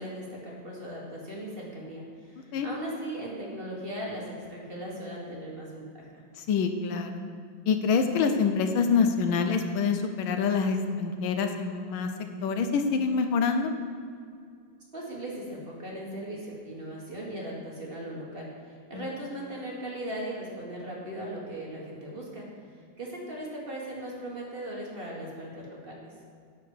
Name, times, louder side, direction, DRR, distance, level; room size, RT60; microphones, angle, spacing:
voice 1, 0.0-6.2 14.9-18.5 18.9-22.5 23.0-26.0, right 1 dB, 30° right, -3 dB, 1.6 m, -38 dB
voice 2, 6.4-7.2 7.7-12.1 12.4-13.7 18.9-19.0, left 5 dB, 85° left, 6 dB, 1.6 m, -26 dB
10.0 x 4.8 x 7.2 m, 2.2 s
omnidirectional pair, 2.1 m